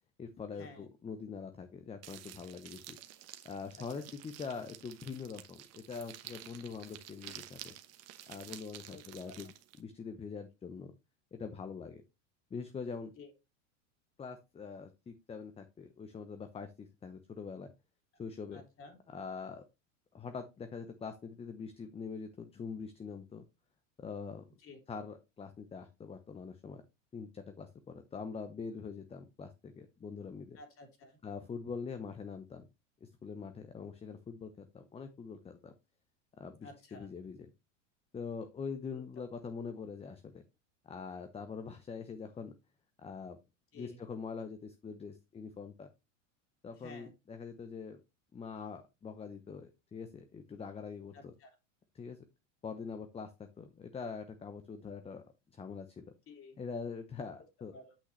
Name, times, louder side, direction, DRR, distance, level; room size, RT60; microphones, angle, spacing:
voice 1, 0.2-3.0 3.4-7.7 8.3-9.5 9.8-10.9 11.3-12.0 12.5-13.1 14.2-17.7 18.2-18.6 19.1-19.6 20.1-23.4 24.0-24.4 24.9-26.8 27.1-30.6 31.2-32.7 33.0-35.7 36.4-37.4 38.1-40.4 40.8-42.5 43.0-43.4 43.7-45.9 46.6-48.0 48.3-51.3 51.9-52.2 52.6-56.0 56.6-57.7, left 5 dB, 15° left, 9 dB, 0.7 m, -44 dB
sound 1, 2.0-9.8, right 12 dB, 40° right, 1.2 m, -51 dB
voice 2, 18.5-18.9 24.6-24.8 30.5-31.2 36.6-37.1 38.9-39.0 43.7-44.0 46.7-47.1 51.1-51.5 56.3-56.6 57.7-57.9, left 3 dB, 35° left, 4 dB, 2.9 m, -52 dB
8.5 x 5.8 x 3.2 m, 0.25 s
hypercardioid pair, 105°, 38 cm